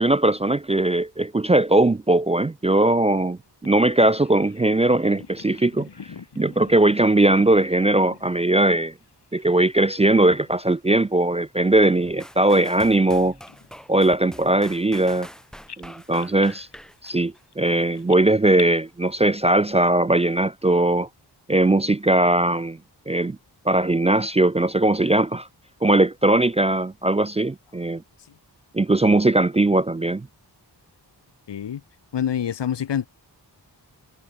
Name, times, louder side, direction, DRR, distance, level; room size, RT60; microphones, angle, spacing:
voice 1, 0.0-5.9 6.4-8.9 9.3-13.3 13.9-15.3 15.8-16.7 17.0-21.1 21.5-22.8 23.1-23.4 23.7-25.5 25.8-28.0 28.7-30.3, right 2 dB, 15° right, 0.3 m, -19 dB
Bird vocalization bird call bird song, 3.6-9.6 9.9-10.8 11.1-11.3 11.9-15.3 15.7-18.6, left 6 dB, 70° left, 2.8 m, -46 dB
sound 1, 12.2-18.0 18.6-18.7, equal, ahead, 1.3 m, -45 dB
voice 2, 31.5-31.8 32.1-33.1, left 9 dB, 90° left, 1.1 m, -26 dB
wide cardioid pair, 120°, 41 cm